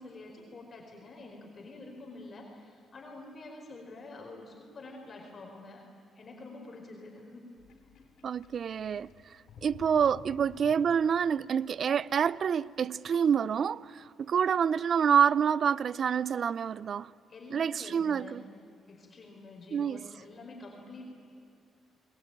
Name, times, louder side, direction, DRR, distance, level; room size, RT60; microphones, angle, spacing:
voice 1, 0.0-5.8 6.1-7.4 17.3-18.4 18.9-21.1, left 2 dB, 40° left, 4.5 m, -47 dB
Sink (filling or washing), 7.6-11.3, left 5 dB, 70° left, 4.3 m, -53 dB
voice 2, 8.2-17.1 17.5-18.4 19.7-20.0, right 7 dB, 55° right, 0.5 m, -27 dB
28.0 x 21.0 x 9.1 m
cardioid pair, 90°, 0 cm